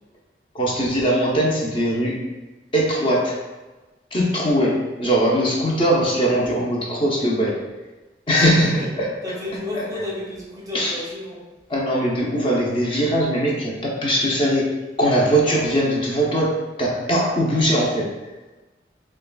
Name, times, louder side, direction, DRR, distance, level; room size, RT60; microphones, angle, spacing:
voice 1, 0.5-2.3 2.7-3.4 4.1-7.7 8.3-9.1 9.7-9.8 10.7-10.9 11.7-18.1, equal, 30° left, -4 dB, 0.7 m, -21 dB
voice 2, 8.4-8.9 9.2-11.4, left 1 dB, 20° right, -3 dB, 0.6 m, -32 dB
5.8 x 2.3 x 2.3 m, 1.1 s
head